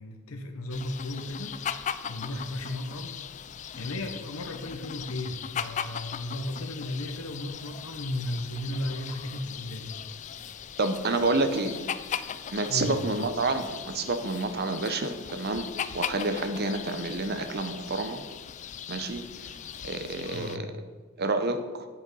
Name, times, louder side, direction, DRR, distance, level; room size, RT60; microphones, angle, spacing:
voice 1, 0.0-1.6 2.1-3.2 3.8-9.9 12.7-13.0 20.3-20.6, left 1 dB, 80° left, 4 dB, 1.0 m, -35 dB
sound 1, 0.7-20.6, left 8 dB, 35° left, 0.3 m, -39 dB
voice 2, 10.8-11.9 12.5-15.7 15.9-18.2 18.9-19.5 19.8-20.7 21.2-21.9, right 2 dB, 50° right, 9 dB, 0.7 m, -29 dB
8.4 x 7.7 x 5.4 m, 1.4 s
head